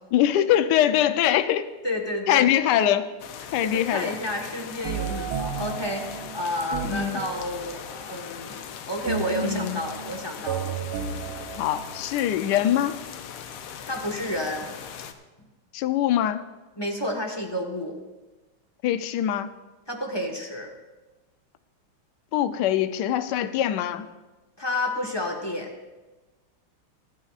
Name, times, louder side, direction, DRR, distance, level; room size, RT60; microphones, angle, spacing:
voice 1, 0.1-1.7 2.3-3.1 3.5-4.1 6.8-7.2 9.4-9.8 11.6-13.1 15.7-16.4 18.8-19.5 22.3-24.1, left 11 dB, 70° left, 10 dB, 1.1 m, -23 dB
voice 2, 1.8-2.5 3.4-10.7 13.8-14.7 16.8-18.0 19.9-20.7 24.6-25.7, left 1 dB, 15° left, 1 dB, 1.1 m, -31 dB
sound 1, 3.2-15.1, left 8 dB, 90° left, 1.7 m, -40 dB
sound 2, 4.8-7.8 9.1-12.3, right 7 dB, 80° right, 1.7 m, -33 dB
26.5 x 9.4 x 2.5 m, 1.2 s
omnidirectional pair, 2.3 m